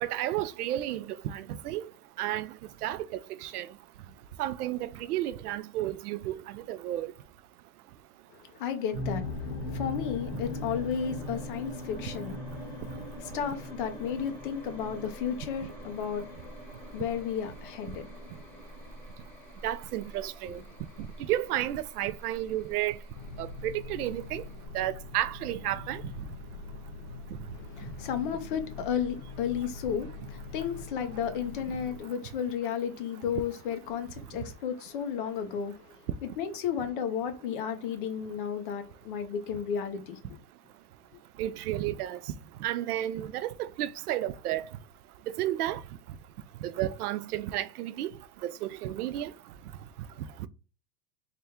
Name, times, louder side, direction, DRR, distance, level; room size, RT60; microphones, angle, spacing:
voice 1, 0.0-1.8 2.2-2.5 2.8-3.1 3.4-3.7 4.4-7.1 19.6-20.6 21.3-22.9 23.4-24.4 24.7-26.0 41.4-42.2 42.6-44.6 45.4-45.8 46.6-48.1 48.4-49.3, right 13 dB, 80° right, 0.6 m, -32 dB
voice 2, 8.5-12.4 13.2-16.2 16.9-18.1 27.7-35.8 36.2-40.2, left 8 dB, 35° left, 0.6 m, -33 dB
sound 1, 8.9-24.7, left 1 dB, 5° left, 0.8 m, -41 dB
sound 2, 23.1-32.0, left 4 dB, 75° left, 1.3 m, -43 dB
3.4 x 2.3 x 4.3 m
supercardioid pair, 165°, 45 cm